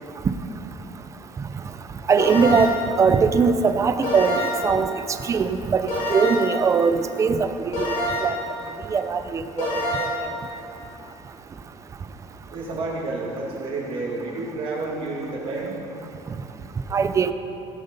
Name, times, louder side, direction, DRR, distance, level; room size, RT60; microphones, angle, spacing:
voice 1, 2.1-4.9 5.2-7.9 8.2-8.3 8.9-10.1 16.9-17.3, right 5 dB, 20° right, 10 dB, 0.5 m, -21 dB
sound 1, 2.2-2.9 4.0-4.8 5.9-6.6 7.7-8.5 9.6-10.2, left 1 dB, 65° left, 3.3 m, -26 dB
voice 2, 12.5-15.8, right 3 dB, 40° right, -4 dB, 2.4 m, -30 dB
16.5 x 7.9 x 5.5 m, 2.8 s
cardioid pair, 155°, 14 cm